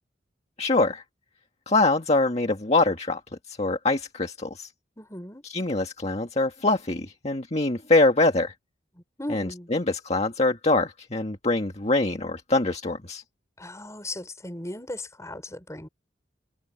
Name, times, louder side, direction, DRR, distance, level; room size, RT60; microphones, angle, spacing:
voice 1, 0.6-1.0 1.7-3.2 3.5-4.7 5.4-8.5 9.3-13.2, left 2 dB, 35° left, 1.8 m, -24 dB
voice 2, 5.0-5.4 8.9-9.7 13.6-15.9, left 1 dB, 15° left, 6.5 m, -37 dB
head